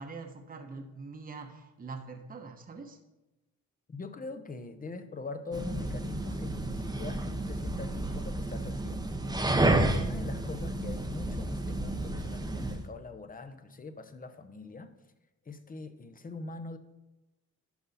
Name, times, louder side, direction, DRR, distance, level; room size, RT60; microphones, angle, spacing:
voice 1, 0.0-3.0, right 4 dB, 30° right, 4 dB, 1.1 m, -43 dB
voice 2, 3.9-9.1 9.8-14.9 15.5-16.8, left 4 dB, 30° left, 9 dB, 0.9 m, -42 dB
sound 1, 5.5-12.8, right 2 dB, 15° right, 0.9 m, -31 dB
12.0 x 5.5 x 4.2 m, 1.0 s
cardioid pair, 90°, 30 cm